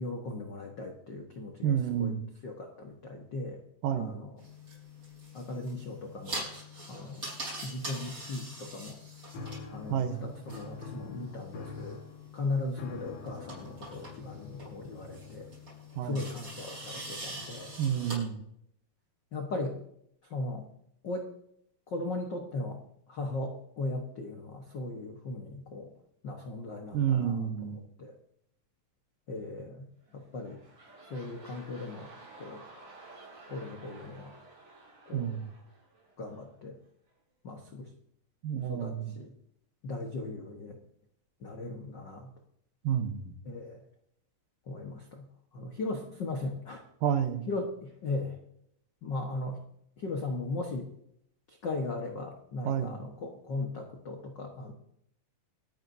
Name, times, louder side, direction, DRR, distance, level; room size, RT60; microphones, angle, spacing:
voice 1, 0.0-2.1 2.4-3.6 3.9-4.3 5.3-6.5 6.9-7.3 7.6-9.0 9.7-12.0 12.3-15.5 16.0-17.7 19.3-19.8 20.3-20.7 21.0-21.3 21.9-22.8 23.1-25.9 26.2-27.4 27.6-28.1 29.3-29.9 30.1-30.6 31.1-32.1 32.4-32.6 33.5-34.3 35.1-35.4 36.2-36.8 37.4-37.9 38.7-39.3 39.8-40.8 41.4-42.3 43.4-43.8 44.7-45.3 45.5-46.8 47.5-48.4 49.0-49.6 50.0-50.9 51.5-54.7, left 2 dB, 75° left, 2 dB, 1.0 m, -37 dB
voice 2, 1.6-2.2 3.8-4.2 9.9-10.3 16.0-16.2 17.8-18.4 26.9-27.8 35.1-35.5 38.4-39.1 42.8-43.3 47.0-47.5 52.7-53.0, right 9 dB, 75° right, 8 dB, 2.6 m, -30 dB
sound 1, 4.4-18.1, equal, 35° right, 7.2 m, -44 dB
sound 2, 9.3-15.8, left 4 dB, 55° left, 2.6 m, -45 dB
sound 3, 30.0-36.6 37.1-37.2, right 3 dB, 50° right, 6.5 m, -53 dB
27.5 x 9.3 x 2.7 m, 0.72 s
omnidirectional pair, 4.2 m